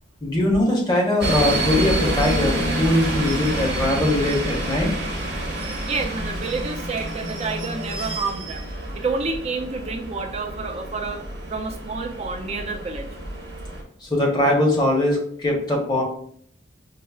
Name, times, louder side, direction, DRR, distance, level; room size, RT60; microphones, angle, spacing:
voice 1, 0.2-4.9 14.0-16.0, left 1 dB, 20° left, -2 dB, 0.8 m, -21 dB
sound 1, 1.2-13.8, right 1 dB, 50° right, 0.7 m, -28 dB
voice 2, 5.8-8.7 8.9-11.2 11.5-13.1, right 4 dB, 30° right, 4 dB, 0.4 m, -29 dB
5.4 x 2.0 x 2.3 m, 0.63 s
head